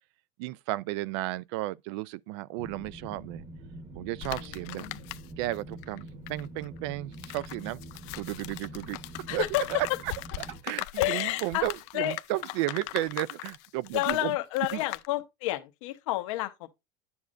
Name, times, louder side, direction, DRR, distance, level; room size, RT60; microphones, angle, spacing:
voice 1, 0.4-3.4 4.0-4.9 5.4-7.8 8.2-9.0 9.3-9.4 9.7-10.1 10.4-14.4 14.7-14.8, right 17 dB, 60° right, 0.4 m, -33 dB
sound 1, 2.6-10.6, right 1 dB, 25° right, 1.1 m, -45 dB
sound 2, 4.2-5.6 5.8-15.1, left 18 dB, 50° left, 0.4 m, -40 dB
voice 2, 4.7-5.1 9.3-9.7 11.0-11.7 11.9-12.2 13.9-16.7, left 16 dB, 75° left, 0.9 m, -30 dB
9.6 x 7.0 x 2.5 m
cardioid pair, 170°, 16 cm